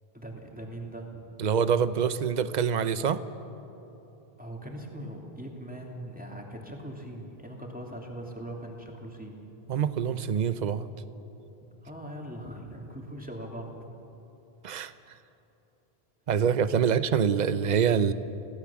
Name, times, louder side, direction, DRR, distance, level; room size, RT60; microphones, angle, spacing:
voice 1, 0.1-1.2 4.4-9.4 11.8-13.9 16.9-17.0, right 1 dB, 10° right, -1 dB, 2.8 m, -41 dB
voice 2, 1.4-3.2 9.7-10.9 14.6-14.9 16.3-18.1, right 7 dB, 50° right, 13 dB, 0.8 m, -25 dB
26.0 x 17.0 x 7.2 m, 3.0 s
omnidirectional pair, 1.0 m